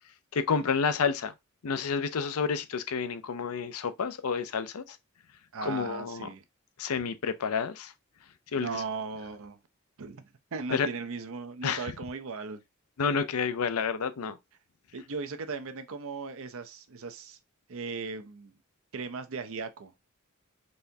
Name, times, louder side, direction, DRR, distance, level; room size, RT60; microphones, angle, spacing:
voice 1, 0.3-1.3 1.6-5.0 5.6-6.3 6.8-7.9 8.5-8.8 10.7-10.9 11.6-11.8 13.0-14.4, left 5 dB, 80° left, 0.5 m, -29 dB
voice 2, 5.5-6.4 8.5-9.6 10.0-10.2 10.5-12.6 14.9-17.4 17.7-18.5 18.9-19.9, right 4 dB, 65° right, 0.6 m, -37 dB
4.2 x 3.4 x 2.7 m
head